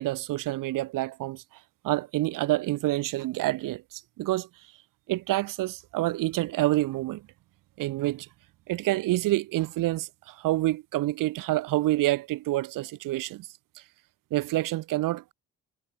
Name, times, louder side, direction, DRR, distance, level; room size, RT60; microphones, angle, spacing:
voice 1, 0.0-1.4 1.8-4.5 5.1-7.3 7.8-8.3 8.7-13.5 14.3-15.3, right 17 dB, 75° right, 4.2 m, -27 dB
supercardioid pair, 60°, 32 cm